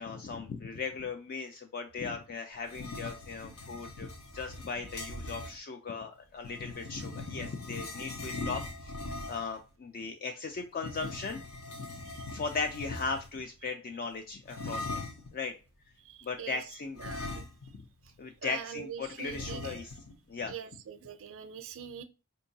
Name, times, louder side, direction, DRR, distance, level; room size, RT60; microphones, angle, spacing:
voice 1, 0.0-11.4 12.3-15.0 15.3-15.5 16.2-17.0 17.7-17.8 18.2-19.9 20.3-20.5, left 4 dB, 40° left, 5 dB, 0.3 m, -38 dB
sound 1, 2.6-5.6 6.4-9.6 10.8-13.4 14.5-15.3 17.0-17.9 18.2-18.3 19.3-20.1, left 2 dB, 70° left, 0.7 m, -41 dB
voice 2, 16.0-16.6 17.0-17.5 18.4-19.8 20.5-22.0, right 8 dB, 60° right, 10 dB, 0.5 m, -43 dB
4.4 x 2.7 x 2.7 m, 0.31 s
head